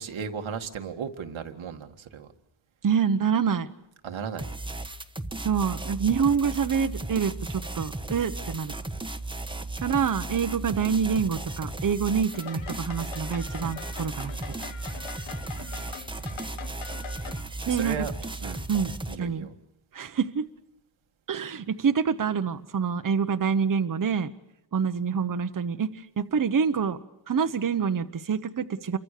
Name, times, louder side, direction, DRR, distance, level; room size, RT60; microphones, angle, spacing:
voice 1, 0.0-2.3 4.0-4.5 9.5-9.7 15.6-15.9 17.7-18.1 18.4-18.6 19.1-19.5, right 6 dB, 90° right, 5 dB, 2.0 m, -36 dB
voice 2, 2.8-3.7 5.4-8.7 9.8-14.3 17.7-18.1 18.7-19.5 19.9-20.5 21.3-24.3 24.7-27.0 27.3-29.0, right 6 dB, 45° right, 8 dB, 1.1 m, -26 dB
sound 1, 4.4-19.2, right 2 dB, 10° right, 1.3 m, -35 dB
sound 2, 12.3-17.4, left 7 dB, 85° left, 1.8 m, -43 dB
28.5 x 24.0 x 6.7 m, 0.87 s
wide cardioid pair, 115°, 46 cm